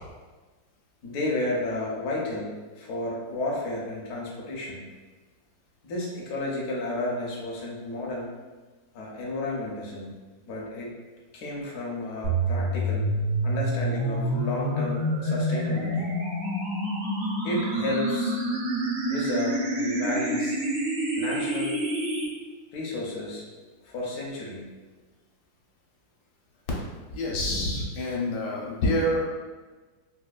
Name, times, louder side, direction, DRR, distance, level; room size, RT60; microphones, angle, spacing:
voice 1, 1.0-4.8 5.8-8.3 8.9-10.1 10.5-10.9 11.3-13.1 13.4-16.1 17.4-18.4 19.1-20.6 21.2-21.8 22.7-23.4 23.8-24.6, left 2 dB, 65° left, -3 dB, 1.0 m, -32 dB
sound 1, 12.2-22.2, right 1 dB, 85° right, 0.6 m, -27 dB
voice 2, 27.1-29.3, left 1 dB, 80° left, -3 dB, 1.4 m, -27 dB
4.2 x 2.2 x 2.4 m, 1.3 s
omnidirectional pair, 2.1 m